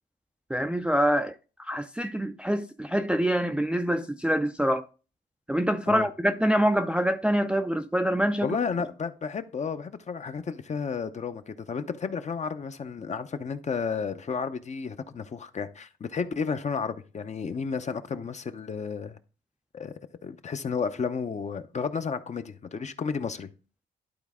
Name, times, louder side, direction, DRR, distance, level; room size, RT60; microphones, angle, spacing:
voice 1, 0.5-4.9 5.5-8.6, equal, 5° right, 0.5 m, -25 dB
voice 2, 8.4-19.2 19.7-19.9 20.2-23.5, left 5 dB, 35° left, 0.7 m, -32 dB
11.5 x 4.1 x 3.6 m
cardioid pair, 90°, 20 cm